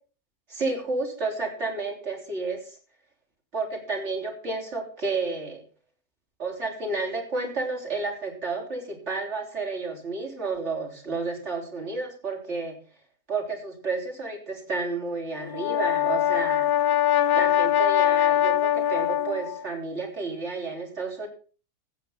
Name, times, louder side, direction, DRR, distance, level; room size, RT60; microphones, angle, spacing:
voice 1, 0.5-2.8 3.5-5.6 6.4-12.8 13.3-16.9 17.3-21.3, right 3 dB, 50° right, 1 dB, 4.0 m, -31 dB
Brass instrument, 15.4-19.6, left 11 dB, 80° left, 1.3 m, -22 dB
14.5 x 8.4 x 5.6 m, 0.38 s
omnidirectional pair, 1.6 m